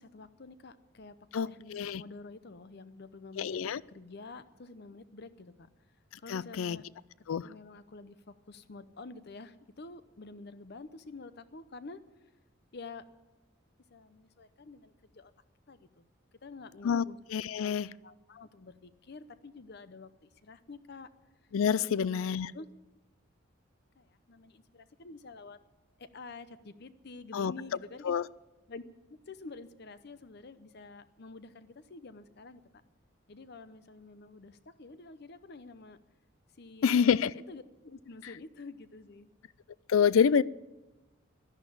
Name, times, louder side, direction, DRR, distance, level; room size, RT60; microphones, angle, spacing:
voice 1, 0.0-3.6 3.9-5.7 6.2-6.9 7.4-12.0 12.7-13.1 13.9-15.3 15.7-16.1 16.4-17.2 17.6-17.7 18.0-21.1 21.8-22.7 24.0-25.6 26.0-28.1 28.7-28.8 29.1-32.6 33.3-36.0 36.6-39.3, left 3 dB, 55° left, 13 dB, 0.7 m, -48 dB
voice 2, 1.3-2.0 3.4-3.8 6.3-6.8 7.3-7.4 16.8-17.0 17.3-17.9 21.5-22.5 27.3-27.5 28.0-28.2 36.8-37.3 39.9-40.4, left 7 dB, 80° left, 21 dB, 0.4 m, -27 dB
12.0 x 11.0 x 8.6 m, 1.1 s
head